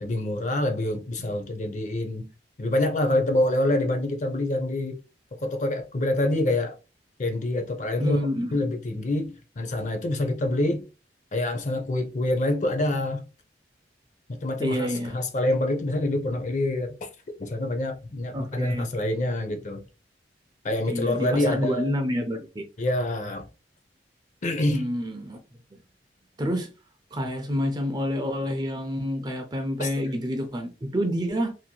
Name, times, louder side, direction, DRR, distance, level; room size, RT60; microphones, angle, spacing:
voice 1, 0.0-2.3 2.6-5.0 5.4-6.8 7.2-10.9 11.3-13.2 14.3-17.1 17.4-19.8 20.6-21.9 22.8-23.4 24.4-24.9 29.8-29.9, left 1 dB, 45° left, 0.5 m, -26 dB
voice 2, 8.0-8.5 14.6-15.2 18.3-18.9 20.9-22.7 24.7-25.4 25.7-25.8 26.4-26.7 27.1-31.5, equal, 25° right, 0.4 m, -28 dB
2.9 x 2.8 x 2.2 m
head